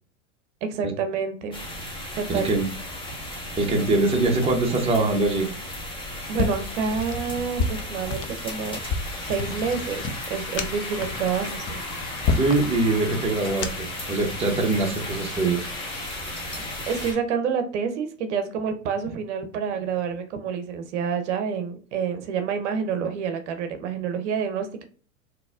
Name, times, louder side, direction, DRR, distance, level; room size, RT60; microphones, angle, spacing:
voice 1, 0.6-1.6 2.2-2.5 6.3-8.8 9.3-10.0 10.3-11.8 16.9-24.8, right 6 dB, 60° right, 8 dB, 0.7 m, -28 dB
sound 1, 1.5-17.1, left 1 dB, 10° left, 1.0 m, -36 dB
voice 2, 2.3-2.7 3.6-5.5 12.3-15.7, right 2 dB, 15° right, 1 dB, 0.8 m, -23 dB
sound 2, 6.3-14.0, left 4 dB, 30° left, 0.5 m, -30 dB
sound 3, 8.1-17.2, left 3 dB, 90° left, 1.2 m, -39 dB
4.0 x 2.7 x 2.3 m, 0.42 s
hypercardioid pair, 100°, 40 cm